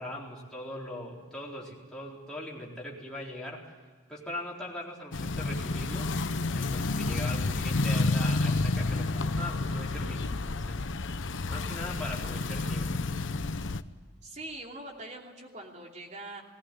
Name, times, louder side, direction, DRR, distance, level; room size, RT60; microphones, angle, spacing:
voice 1, 0.0-3.6 4.1-6.1 6.5-10.8 11.5-13.0, left 1 dB, 5° left, -5 dB, 4.2 m, -40 dB
sound 1, 5.1-13.8, left 3 dB, 75° left, 0.8 m, -30 dB
voice 2, 14.2-16.4, right 2 dB, 35° right, 1 dB, 2.9 m, -43 dB
19.5 x 16.5 x 10.0 m, 1.5 s
head